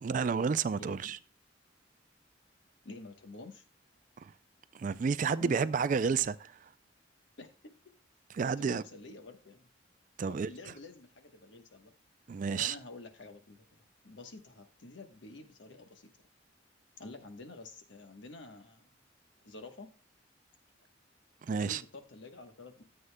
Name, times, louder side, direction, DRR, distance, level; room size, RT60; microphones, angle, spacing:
voice 1, 0.0-1.2 4.2-4.3 4.7-6.5 8.3-8.8 10.2-10.5 12.3-12.7 21.4-21.8, right 5 dB, 40° right, 0.3 m, -30 dB
voice 2, 0.7-1.1 2.8-3.6 5.3-5.7 7.4-7.5 8.4-9.7 10.3-11.9 12.5-16.3 17.0-18.9 19.4-19.9 21.5-22.8, left 2 dB, 70° left, 1.1 m, -49 dB
13.0 x 7.8 x 2.2 m
head